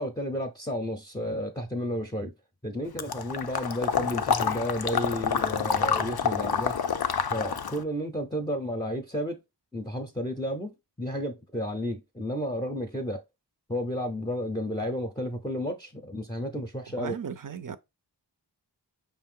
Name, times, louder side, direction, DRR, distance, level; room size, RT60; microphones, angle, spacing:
voice 1, 0.0-2.3 2.6-6.8 7.3-9.4 9.7-13.2 13.7-17.2, equal, 10° left, 0.6 m, -32 dB
Water / Liquid, 3.0-7.8, left 7 dB, 65° left, 0.5 m, -28 dB
voice 2, 17.0-17.8, right 7 dB, 50° right, 0.5 m, -36 dB
5.4 x 2.6 x 3.7 m
wide cardioid pair, 45°, 42 cm